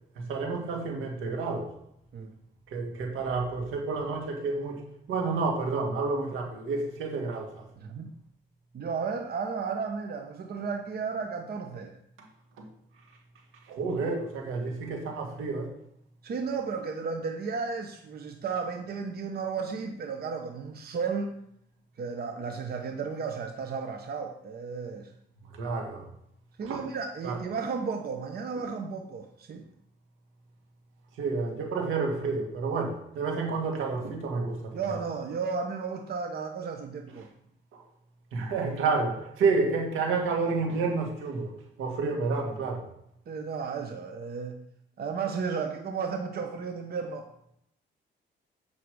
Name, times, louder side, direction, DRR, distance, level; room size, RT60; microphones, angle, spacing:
voice 1, 0.2-1.7 2.7-7.7 12.6-12.7 13.7-15.7 25.5-26.1 26.6-26.9 27.2-27.4 31.2-34.8 37.7-37.8 38.3-41.5 41.8-42.8, right 4 dB, 90° right, 1 dB, 2.0 m, -30 dB
voice 2, 7.8-8.1 8.7-12.0 16.2-21.3 22.0-25.1 26.6-29.6 34.7-37.3 43.3-44.6 45.0-47.3, right 5 dB, 50° right, 4 dB, 1.0 m, -33 dB
8.0 x 5.6 x 4.9 m, 0.73 s
cardioid pair, 90°, 20 cm